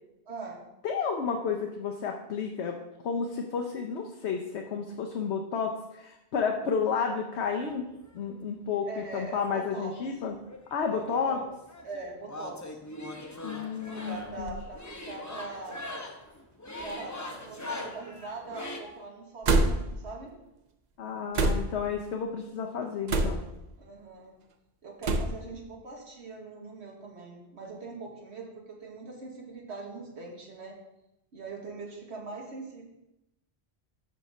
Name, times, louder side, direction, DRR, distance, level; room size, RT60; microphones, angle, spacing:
voice 1, 0.3-0.7 8.9-10.0 10.9-11.5 11.8-12.8 13.9-15.9 16.8-20.4 23.8-24.4 24.8-30.8 31.3-32.8, right 3 dB, 80° right, 0 dB, 1.5 m, -42 dB
voice 2, 0.8-2.7 3.0-7.8 8.1-10.3 10.7-11.4 13.4-14.5 21.0-23.4, left 6 dB, 80° left, 2 dB, 1.0 m, -31 dB
sound 1, 7.3-8.2 9.0-10.2 10.4-18.8, left 2 dB, 20° left, 0.6 m, -42 dB
sound 2, 14.3-14.7 15.5-15.6 16.8-17.1 17.3-17.9 19.4-20.0 21.3-21.9 23.1-23.6 25.0-25.5, right 2 dB, 50° right, 0.6 m, -27 dB
6.2 x 5.7 x 5.3 m, 0.89 s
omnidirectional pair, 1.1 m